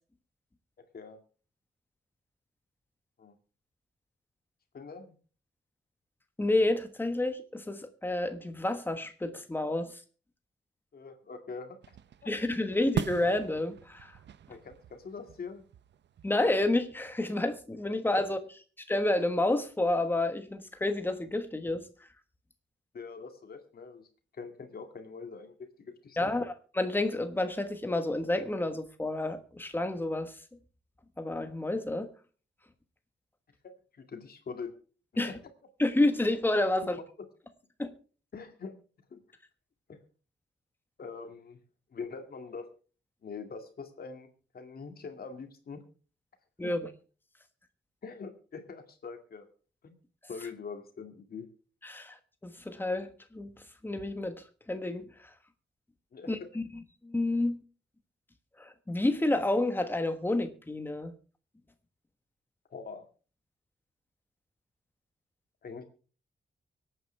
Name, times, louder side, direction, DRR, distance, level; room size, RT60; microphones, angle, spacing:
voice 1, 4.7-5.2 10.9-11.8 12.2-12.3 14.5-15.6 22.9-24.1 24.3-26.3 33.6-34.7 35.1-35.4 37.0-37.1 38.3-38.8 39.1-39.2 39.9-40.0 41.0-41.6 41.9-42.7 43.2-44.3 44.5-45.8 46.6-46.7 48.0-49.5 49.8-50.0 50.3-51.5 56.1-56.5 62.7-63.1 65.6-65.8, left 5 dB, 55° left, 2.3 m, -43 dB
voice 2, 6.4-10.0 12.3-14.1 16.2-18.4 18.9-21.8 26.2-26.4 26.7-30.3 31.2-32.1 35.2-35.3 35.8-37.0 37.8-37.9 46.6-46.8 51.8-52.2 52.4-53.5 53.8-55.1 56.3-56.6 57.0-57.6 58.6-61.1, left 2 dB, 10° left, 1.3 m, -29 dB
sound 1, 11.8-17.1, right 9 dB, 70° right, 0.6 m, -41 dB
24.0 x 9.0 x 3.4 m
wide cardioid pair, 180°, 19 cm